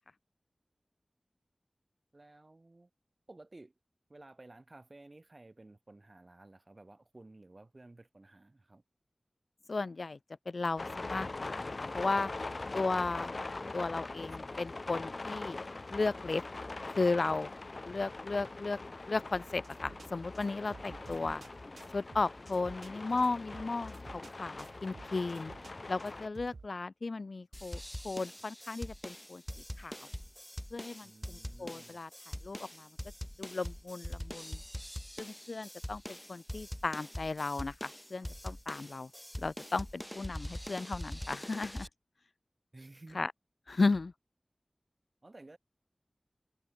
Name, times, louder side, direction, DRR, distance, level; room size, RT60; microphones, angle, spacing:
voice 1, 2.1-2.9 3.3-3.7 4.1-8.8 31.0-32.0 42.7-43.2 43.7-43.8 45.2-45.6, right 2 dB, 45° right, 2.1 m, -54 dB
voice 2, 9.7-10.2 10.5-12.3 12.7-13.3 13.7-15.6 15.9-16.4 17.0-17.5 17.8-18.8 19.1-21.4 21.9-25.5 25.9-29.4 29.8-30.1 30.7-32.1 32.4-32.9 33.4-34.6 35.2-39.1 39.4-41.9 43.1-43.3 43.7-44.1, left 3 dB, 75° left, 0.5 m, -35 dB
sound 1, 10.8-26.3, left 3 dB, 60° left, 1.2 m, -42 dB
sound 2, 19.3-26.7, right 3 dB, 85° right, 4.3 m, -54 dB
sound 3, 27.5-41.9, equal, 10° left, 0.5 m, -43 dB
wide cardioid pair, 55°, 0 cm